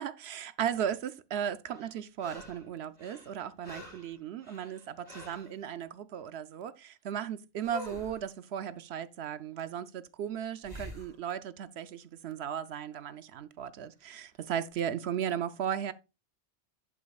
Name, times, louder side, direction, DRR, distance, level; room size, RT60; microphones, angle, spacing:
voice 1, 0.0-15.9, right 9 dB, 70° right, 0.8 m, -36 dB
sound 1, 1.7-2.7 3.0-5.5 7.6-8.2 10.6-11.1 14.1-14.2, left 2 dB, 30° right, 3.8 m, -47 dB
11.0 x 8.5 x 2.3 m
omnidirectional pair, 1.1 m